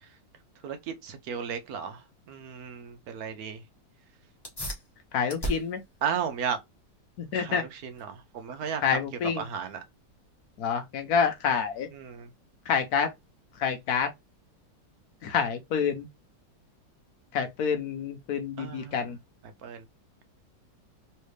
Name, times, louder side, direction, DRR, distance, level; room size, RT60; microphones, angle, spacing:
voice 1, 0.6-2.0 2.3-3.6 6.0-6.6 7.3-9.0 9.4-9.8 11.9-12.3 18.6-19.2 19.6-19.8, right 7 dB, 65° right, 1.1 m, -34 dB
sound 1, 4.4-14.4, right 1 dB, 15° left, 0.9 m, -42 dB
voice 2, 5.1-5.8 7.2-7.6 8.8-9.4 10.6-11.9 12.7-13.1 13.6-14.1 15.2-16.1 17.3-19.2, left 6 dB, 60° left, 1.2 m, -27 dB
3.3 x 3.2 x 3.2 m
omnidirectional pair, 2.0 m